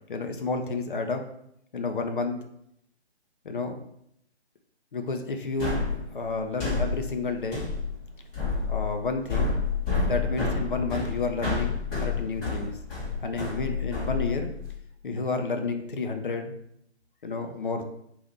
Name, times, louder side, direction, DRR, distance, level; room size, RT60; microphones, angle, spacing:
voice 1, 0.1-1.2 1.7-2.4 3.4-3.8 4.9-5.9 6.1-7.6 8.7-9.6 10.0-12.7 13.2-14.5 15.0-16.5 17.2-17.8, left 3 dB, 50° left, 5 dB, 0.6 m, -30 dB
sound 1, 5.6-14.7, left 4 dB, 15° left, 1.3 m, -29 dB
5.2 x 2.6 x 3.6 m, 0.74 s
figure-of-eight pair, 155°, 34 cm